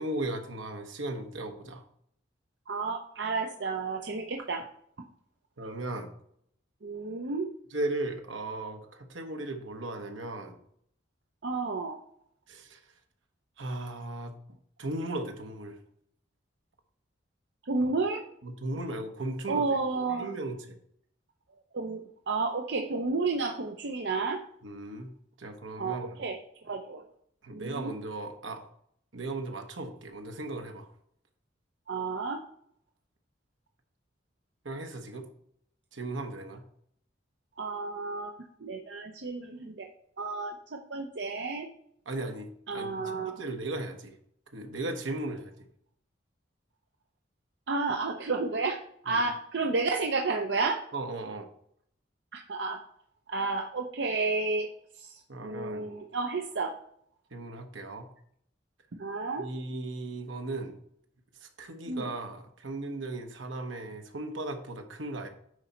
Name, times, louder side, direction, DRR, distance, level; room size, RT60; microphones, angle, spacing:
voice 1, 0.0-1.8 5.6-6.1 7.7-10.6 12.5-12.8 13.6-14.3 14.8-15.8 17.8-17.9 18.4-19.7 20.2-20.6 24.6-26.2 27.4-28.6 29.1-30.9 34.6-35.2 35.9-36.6 42.0-44.2 44.5-45.5 49.1-49.2 50.9-51.5 55.3-55.9 57.3-58.1 59.4-60.8 61.4-65.3, right 2 dB, 80° right, 4 dB, 1.2 m, -37 dB
voice 2, 2.7-4.6 6.8-7.5 11.4-12.0 17.6-18.2 19.5-20.3 21.7-22.0 22.3-24.4 25.8-26.4 26.6-27.0 27.5-27.9 31.9-32.4 37.6-39.9 40.2-41.7 42.7-43.3 47.7-50.8 52.3-52.8 53.3-54.7 55.0-56.7 58.9-59.5 61.9-62.1, right 3 dB, 60° right, 3 dB, 0.6 m, -31 dB
9.6 x 4.1 x 4.4 m, 0.67 s
head